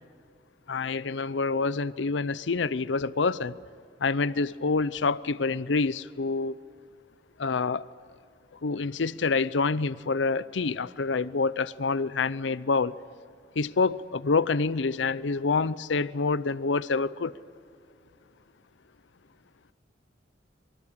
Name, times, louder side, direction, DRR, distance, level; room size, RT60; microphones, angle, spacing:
voice 1, 0.7-3.6 4.0-6.6 7.4-7.8 8.6-12.9 13.6-17.3, left 4 dB, 85° left, 0.6 m, -27 dB
26.0 x 24.5 x 8.7 m
head